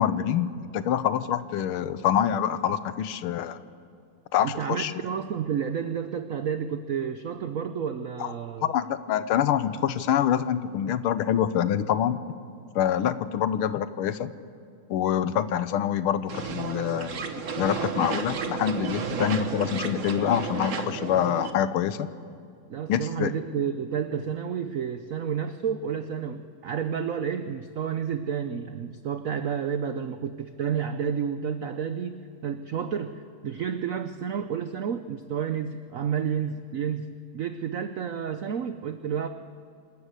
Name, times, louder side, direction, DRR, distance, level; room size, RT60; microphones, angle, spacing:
voice 1, 0.0-3.6 4.3-4.9 8.2-8.3 8.6-12.2 12.7-14.3 14.9-17.1 17.6-22.1 22.9-23.3, left 9 dB, 80° left, 13 dB, 1.6 m, -26 dB
voice 2, 4.4-8.7 22.7-37.1 37.3-39.3, right 7 dB, 85° right, 9 dB, 0.7 m, -30 dB
sound 1, 16.3-21.5, right 5 dB, 45° right, 1.3 m, -32 dB
27.5 x 13.0 x 8.2 m, 2.4 s
omnidirectional pair, 2.4 m